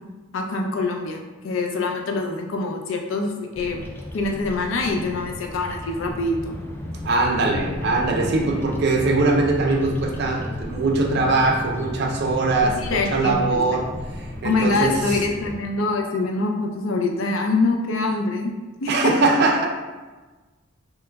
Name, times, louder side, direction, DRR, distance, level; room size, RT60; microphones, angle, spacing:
voice 1, 0.3-3.9 4.1-6.6 12.8-13.4 14.4-18.5 18.8-19.1, left 3 dB, 75° left, 3 dB, 0.4 m, -24 dB
Bird vocalization bird call bird song, 3.5-15.6, left 1 dB, 10° left, 0.3 m, -34 dB
voice 2, 7.0-13.8 14.1-14.9 18.9-19.7, right 3 dB, 55° right, 2 dB, 0.5 m, -21 dB
2.9 x 2.2 x 3.3 m, 1.2 s
head